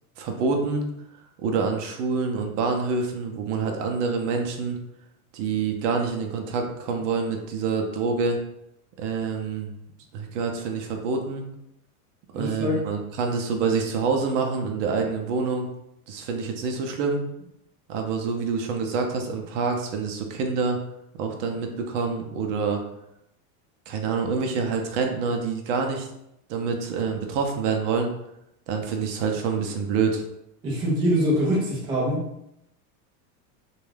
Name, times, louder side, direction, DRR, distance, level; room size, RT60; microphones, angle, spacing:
voice 1, 0.2-0.8 1.4-4.8 5.3-8.4 9.0-9.7 10.1-11.4 12.3-15.7 16.1-17.2 17.9-20.8 21.2-22.8 23.9-26.1 26.5-28.1 28.7-30.2, right 5 dB, 55° right, 3 dB, 0.6 m, -26 dB
voice 2, 12.3-12.7 30.6-32.2, equal, 10° right, -6 dB, 0.3 m, -24 dB
2.5 x 2.3 x 3.2 m, 0.81 s
supercardioid pair, 150°, 44 cm